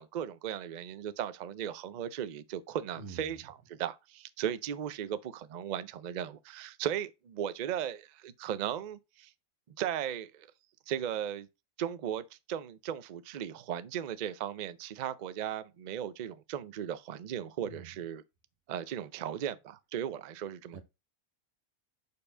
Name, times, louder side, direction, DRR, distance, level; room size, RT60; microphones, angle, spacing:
voice 1, 0.0-9.3 9.7-10.5 10.9-11.5 11.8-18.2 18.7-20.8, right 9 dB, 85° right, 0.4 m, -37 dB
voice 2, 3.0-3.3 17.7-17.9 20.7-20.8, right 4 dB, 60° right, 1.5 m, -45 dB
5.2 x 4.4 x 5.4 m
omnidirectional pair, 1.5 m